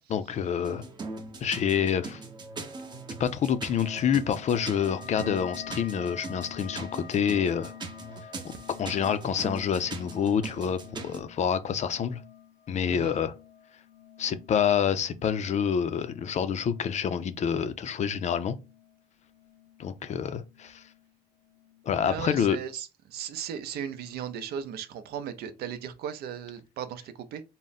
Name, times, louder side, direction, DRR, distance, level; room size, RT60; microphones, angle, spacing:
voice 1, 0.1-0.8 1.4-2.2 3.2-7.7 8.4-12.2 12.7-13.3 14.2-18.6 19.8-20.8 21.8-22.6, left 8 dB, 45° left, 0.4 m, -27 dB
sound 1, 0.6-11.2, right 3 dB, 25° right, 0.7 m, -41 dB
sound 2, 3.8-19.0 19.2-20.0 20.3-21.1 21.4-21.8, left 8 dB, 85° left, 0.6 m, -48 dB
voice 2, 22.0-22.9 23.1-27.0 27.3-27.4, right 8 dB, 70° right, 0.6 m, -36 dB
3.7 x 2.1 x 4.0 m
cardioid pair, 110°, 17 cm